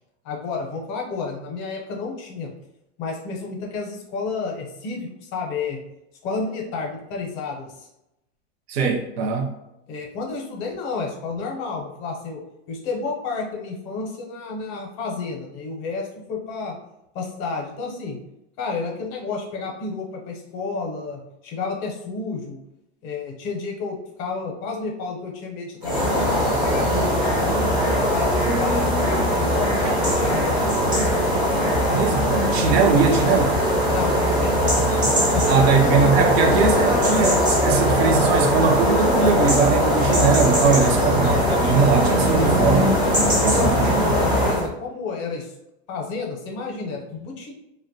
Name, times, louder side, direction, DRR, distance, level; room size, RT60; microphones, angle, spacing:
voice 1, 0.2-2.5 3.0-5.8 6.2-7.9 9.9-12.4 12.7-16.8 17.1-18.2 18.6-22.6 23.0-27.6 28.0-30.5 33.9-35.0 35.3-35.4 40.8-41.0 42.5-42.8 43.5-45.5 45.9-47.5, left 4 dB, 40° left, 0.6 m, -31 dB
voice 2, 8.7-9.5 29.8-30.0 31.9-33.6 35.5-43.0 43.4-44.1, right 5 dB, 60° right, 0.6 m, -21 dB
sound 1, 25.8-44.7, equal, 15° right, 0.3 m, -20 dB
2.5 x 2.1 x 2.6 m
supercardioid pair, 155°, 35 cm